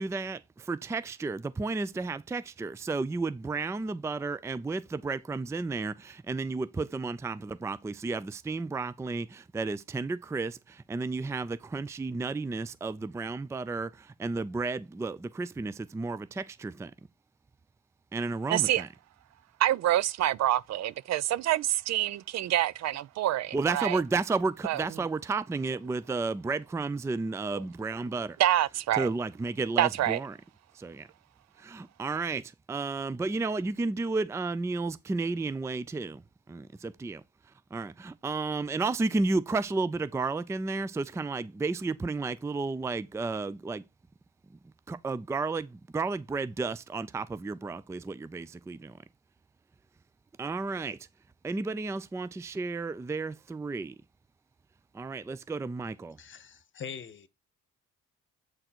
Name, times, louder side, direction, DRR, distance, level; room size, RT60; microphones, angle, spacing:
voice 1, 0.0-16.9 18.1-18.9 23.5-28.4 29.0-30.4 30.7-31.1 31.6-36.2 37.0-37.1 37.7-43.8 44.9-48.9 50.4-51.0 51.4-54.0 54.9-56.2, right 3 dB, 10° right, 0.4 m, -32 dB
voice 2, 18.5-18.8 19.6-24.0 24.6-24.8 28.4-29.1 29.8-30.2, right 13 dB, 60° right, 0.5 m, -26 dB
voice 3, 56.2-57.3, left 7 dB, 40° left, 1.0 m, -42 dB
8.0 x 3.8 x 4.4 m
cardioid pair, 90°, 30 cm